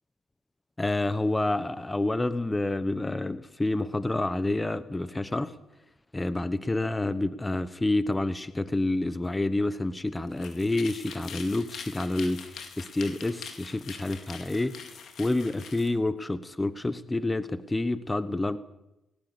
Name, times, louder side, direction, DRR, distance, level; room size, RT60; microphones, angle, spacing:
voice 1, 0.8-5.5 6.1-14.9 15.2-18.6, left 2 dB, 15° left, 14 dB, 1.1 m, -28 dB
sound 1, 10.3-15.9, left 6 dB, 65° left, 4.2 m, -44 dB
20.5 x 18.0 x 8.5 m, 0.92 s
cardioid pair, 100°, 0 cm